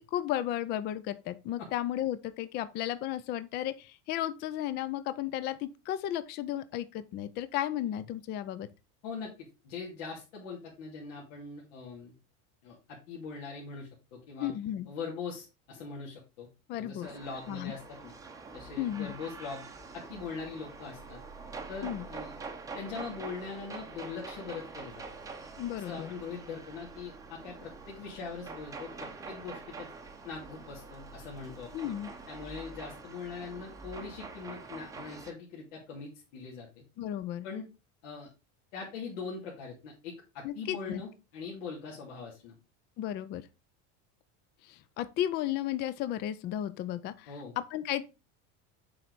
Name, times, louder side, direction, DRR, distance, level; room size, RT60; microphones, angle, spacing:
voice 1, 0.0-8.7 14.4-14.9 16.7-17.1 17.5-17.7 18.8-19.1 21.8-22.0 25.6-26.1 31.7-32.1 37.0-37.5 40.4-41.0 43.0-43.4 44.7-47.3 47.7-48.0, left 12 dB, 30° left, 0.4 m, -34 dB
voice 2, 9.6-12.1 12.6-14.5 14.9-16.5 16.8-18.1 18.5-19.7 19.9-21.2 21.7-22.3 22.7-25.0 25.7-29.9 30.2-31.7 32.3-36.8 37.4-37.6 38.0-38.3 38.7-42.5 47.3-47.5, left 5 dB, 75° left, 2.6 m, -42 dB
sound 1, 17.0-35.3, right 4 dB, 10° right, 0.7 m, -45 dB
7.7 x 4.5 x 4.0 m
cardioid pair, 165°, 38 cm